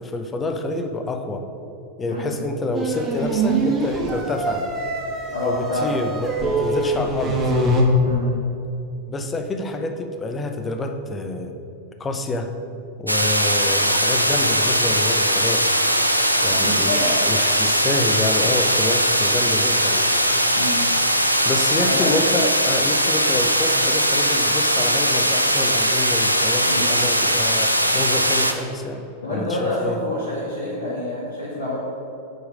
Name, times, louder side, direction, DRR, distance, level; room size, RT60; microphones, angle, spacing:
voice 1, 0.0-1.4 2.0-4.7 5.4-7.5 9.1-11.5 12.0-12.5 13.0-15.7 16.4-20.0 21.4-30.0, left 2 dB, 20° left, 6 dB, 0.8 m, -27 dB
sound 1, 2.7-7.8, right 2 dB, 25° right, 1.4 m, -24 dB
voice 2, 5.3-6.0 8.0-8.3 16.5-17.2 20.5-20.9 21.8-22.1 26.6-26.9 29.2-31.8, left 1 dB, 70° left, -9 dB, 2.0 m, -27 dB
sound 2, 13.1-28.5, equal, 90° right, 0.5 m, -20 dB
9.2 x 4.9 x 5.1 m, 2.8 s
figure-of-eight pair, 90°, 0 cm